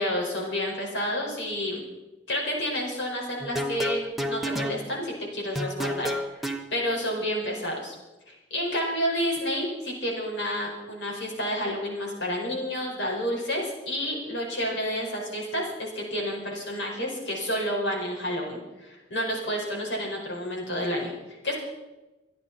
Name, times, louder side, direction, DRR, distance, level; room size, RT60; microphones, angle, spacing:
voice 1, 0.0-1.9 2.3-6.1 6.3-7.9 8.3-21.6, equal, 65° left, -1 dB, 5.3 m, -30 dB
sound 1, 3.4-4.8 5.6-6.6, equal, ahead, 1.1 m, -29 dB
27.0 x 10.5 x 4.3 m, 1.1 s
head